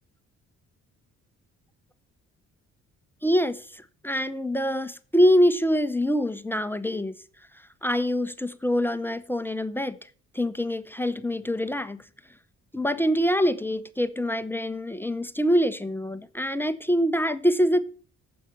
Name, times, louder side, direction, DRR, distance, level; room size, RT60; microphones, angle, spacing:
voice 1, 3.2-7.1 7.8-10.0 10.3-12.0 12.7-17.8, equal, 5° left, 0.7 m, -25 dB
9.2 x 7.2 x 6.6 m
cardioid pair, 90°, 30 cm